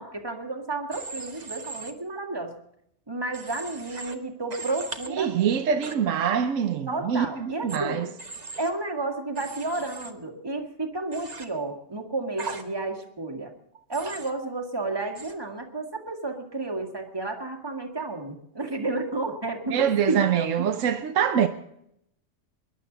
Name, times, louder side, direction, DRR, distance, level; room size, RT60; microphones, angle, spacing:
voice 1, 0.0-2.5 3.1-5.5 6.9-8.1 8.6-13.5 13.9-20.7, right 2 dB, 20° right, 1.9 m, -32 dB
Human voice / Train, 0.9-1.9 3.3-4.1 4.5-5.1 5.8-5.9 7.7-7.8 8.2-8.7 9.3-10.1 11.1-11.4 12.4-12.6 13.9-14.3 15.1-15.3, right 4 dB, 35° right, 1.3 m, -38 dB
voice 2, 5.2-8.1 19.7-21.5, right 8 dB, 85° right, 1.2 m, -24 dB
22.5 x 11.0 x 3.9 m
omnidirectional pair, 1.3 m